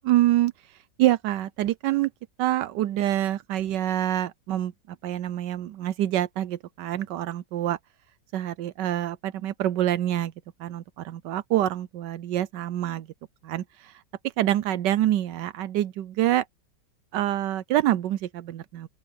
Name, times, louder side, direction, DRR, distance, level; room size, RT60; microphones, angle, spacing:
voice 1, 0.0-0.5 1.0-2.1 2.4-7.8 8.3-10.3 10.6-13.1 13.4-13.9 14.4-16.5 17.1-18.9, right 13 dB, 80° right, 1.2 m, -26 dB
open air
omnidirectional pair, 1.9 m